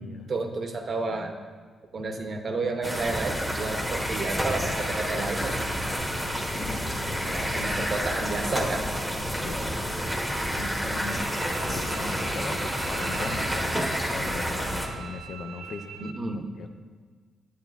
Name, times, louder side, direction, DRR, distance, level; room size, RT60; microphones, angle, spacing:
voice 1, 0.3-1.3 1.9-5.6 7.2-8.9 10.6-11.2 16.0-16.5, right 3 dB, 45° right, 5 dB, 0.7 m, -31 dB
voice 2, 2.0-2.5 6.6-7.9 9.4-10.2 10.8-13.8 14.1-16.1 16.6-16.7, left 4 dB, 65° left, 7 dB, 0.5 m, -40 dB
sound 1, 2.8-14.9, equal, ahead, 0.9 m, -29 dB
sound 2, 3.0-12.1, left 1 dB, 25° left, 1.6 m, -43 dB
Bowed string instrument, 11.1-16.1, right 8 dB, 85° right, 0.7 m, -42 dB
9.0 x 8.7 x 2.4 m, 1.5 s
cardioid pair, 120°, 0 cm